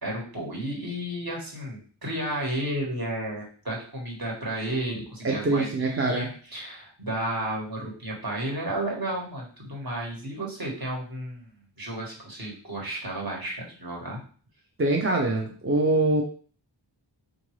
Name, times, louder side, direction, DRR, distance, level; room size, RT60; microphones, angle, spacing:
voice 1, 0.0-11.5 11.8-14.2, right 1 dB, 50° right, -3 dB, 1.4 m, -32 dB
voice 2, 5.2-6.3 14.8-16.2, right 2 dB, 30° right, 1 dB, 0.5 m, -24 dB
3.7 x 2.5 x 3.1 m, 0.43 s
wide cardioid pair, 40°, 46 cm